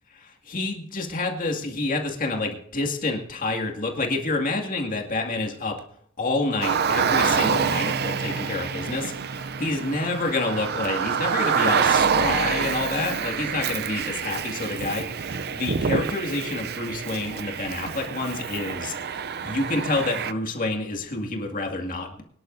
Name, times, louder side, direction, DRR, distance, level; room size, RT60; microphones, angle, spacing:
voice 1, 0.2-5.8 6.2-22.2, left 2 dB, 40° left, 2 dB, 2.2 m, -28 dB
Car, 6.6-20.3, right 6 dB, 50° right, 0.6 m, -26 dB
25.0 x 11.0 x 2.7 m, 0.68 s
head